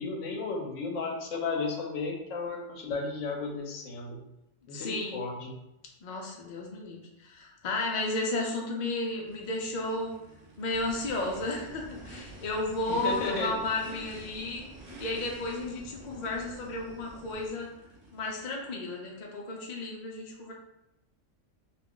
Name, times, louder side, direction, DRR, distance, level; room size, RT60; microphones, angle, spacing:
voice 1, 0.0-4.2 4.7-5.5 12.9-13.5, left 3 dB, 80° left, 1 dB, 1.0 m, -34 dB
voice 2, 4.7-5.2 6.0-10.2 10.6-14.7 15.0-17.7 18.1-20.5, left 2 dB, 55° left, -1 dB, 0.5 m, -33 dB
Race car auto racing / Idling / Accelerating revving vroom, 9.2-18.7, right 1 dB, 60° right, 0.9 m, -51 dB
sound 1, 10.7-17.5, right 1 dB, 15° right, 1.1 m, -50 dB
2.5 x 2.3 x 3.6 m, 0.88 s
omnidirectional pair, 1.3 m